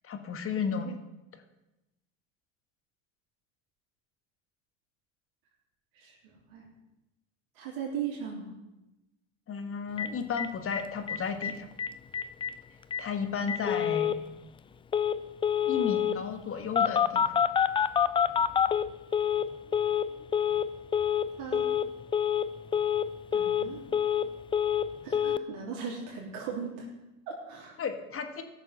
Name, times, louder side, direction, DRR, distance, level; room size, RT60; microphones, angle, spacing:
voice 1, 0.0-1.0 9.5-11.7 13.0-14.1 15.6-17.4 27.8-28.4, left 6 dB, 35° left, 6 dB, 1.7 m, -33 dB
voice 2, 5.9-6.7 7.5-8.5 21.4-21.8 23.3-23.8 25.0-26.9 27.3-27.8, right 6 dB, 60° right, -3 dB, 3.3 m, -38 dB
Telephone, 10.0-10.1 10.4-10.5 10.7-10.8 11.1-11.5 11.8-11.9 12.1-12.5 12.9-13.0 13.5-14.2 14.9-15.2 15.4-16.2 16.8-19.5 19.7-20.1 20.3-20.7 20.9-21.3 21.5-21.9 22.1-22.5 22.7-23.1 23.3-24.3 24.5-24.9 25.1-25.4, left 8 dB, 15° left, 0.3 m, -26 dB
16.0 x 6.7 x 5.7 m, 0.97 s
hypercardioid pair, 80°, 38 cm